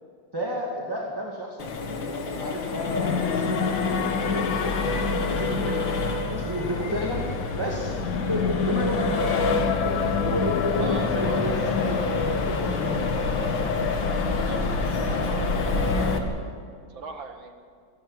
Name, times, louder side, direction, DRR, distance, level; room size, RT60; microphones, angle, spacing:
voice 1, 0.3-5.9 6.3-7.9 8.2-9.3 9.8-13.0, equal, 10° right, -3 dB, 2.3 m, -32 dB
Accelerating revving vroom, 1.6-16.2, left 3 dB, 90° left, 2.4 m, -27 dB
sound 1, 2.6-12.5, left 6 dB, 60° left, 1.1 m, -30 dB
voice 2, 10.6-11.7 14.3-16.5 16.9-17.5, right 3 dB, 85° right, 5 dB, 2.5 m, -40 dB
28.0 x 11.5 x 9.1 m, 2.1 s
omnidirectional pair, 2.1 m